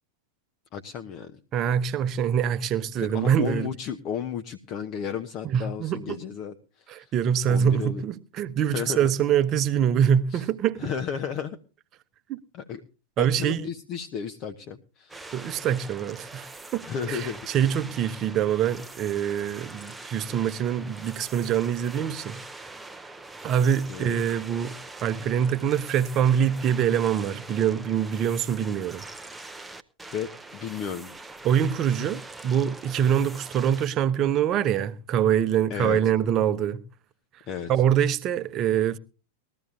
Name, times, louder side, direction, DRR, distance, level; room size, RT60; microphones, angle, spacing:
voice 1, 0.7-1.4 3.0-7.1 7.5-8.0 8.7-9.1 10.3-10.5 10.8-11.6 12.5-12.8 13.2-15.5 16.9-17.5 23.9-24.2 30.1-31.1 35.7-36.0 37.5-37.7, left 7 dB, 35° left, 1.0 m, -33 dB
voice 2, 1.5-3.7 5.4-6.2 6.9-10.9 12.3-12.4 13.2-13.7 15.3-22.4 23.4-29.0 31.4-36.8 37.7-39.0, right 9 dB, 30° right, 0.9 m, -24 dB
sound 1, 15.1-33.9, right 2 dB, 5° right, 0.8 m, -43 dB
20.5 x 14.0 x 2.5 m
figure-of-eight pair, 90°, 0 cm